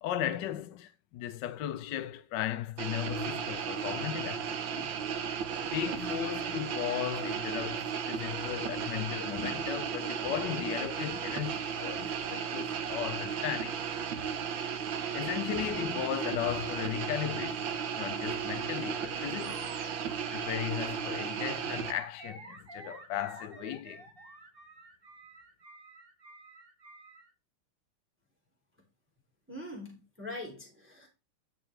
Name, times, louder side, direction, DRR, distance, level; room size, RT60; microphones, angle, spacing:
voice 1, 0.0-4.9 5.7-13.8 14.1-14.2 15.1-17.6 18.0-19.6 20.3-24.1, left 11 dB, 70° left, 1.1 m, -36 dB
sound 1, 2.8-21.9, right 7 dB, 65° right, 1.6 m, -35 dB
Animal, 19.3-27.3, right 2 dB, 35° right, 1.1 m, -50 dB
voice 2, 29.5-31.1, left 1 dB, 5° right, 2.7 m, -42 dB
11.0 x 6.1 x 3.2 m
omnidirectional pair, 2.4 m